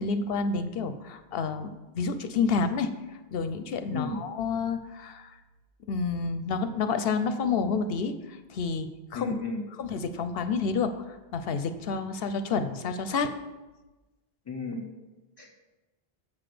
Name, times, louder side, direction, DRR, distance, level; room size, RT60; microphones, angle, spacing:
voice 1, 0.0-2.9 3.3-5.4 5.9-9.3 9.8-13.3, left 5 dB, 70° left, 9 dB, 0.8 m, -29 dB
voice 2, 9.1-9.7 14.4-14.9 15.4-15.6, left 2 dB, 25° left, 0 dB, 1.5 m, -34 dB
7.5 x 6.0 x 4.9 m, 1.1 s
omnidirectional pair, 1.0 m